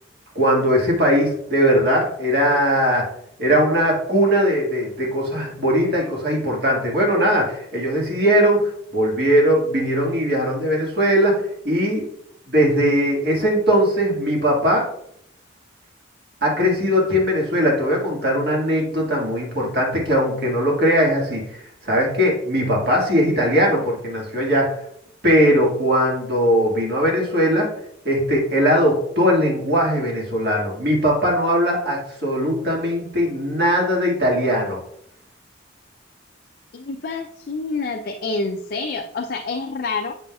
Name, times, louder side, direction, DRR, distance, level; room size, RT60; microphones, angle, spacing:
voice 1, 0.3-3.0 3.4-8.6 8.9-11.3 11.6-12.0 12.5-14.8 16.4-21.4 21.8-24.7 25.2-27.7 28.0-34.8, equal, 50° right, -2 dB, 1.7 m, -19 dB
voice 2, 36.7-40.1, left 3 dB, 50° left, 3 dB, 0.4 m, -27 dB
8.4 x 5.5 x 2.3 m, 0.71 s
head